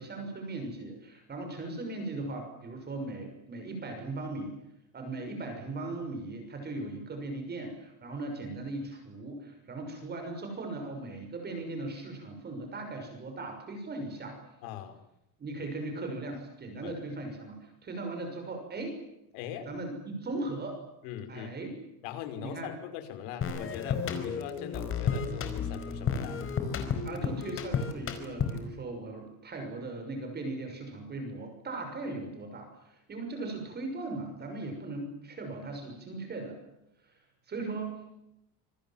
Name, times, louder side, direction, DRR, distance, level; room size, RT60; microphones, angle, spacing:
voice 1, 0.0-4.5 4.9-14.4 15.4-19.0 19.6-20.8 21.3-21.7 22.4-22.7 27.0-36.6 37.0-37.1 37.5-38.1, right 2 dB, 20° right, 4 dB, 6.2 m, -38 dB
voice 2, 14.6-15.0 16.8-17.0 19.3-19.7 21.0-21.5 22.0-26.5, left 9 dB, 80° left, 8 dB, 5.7 m, -40 dB
sound 1, 23.4-28.7, left 6 dB, 30° left, 4.7 m, -32 dB
27.0 x 26.0 x 7.4 m, 0.84 s
cardioid pair, 165°, 44 cm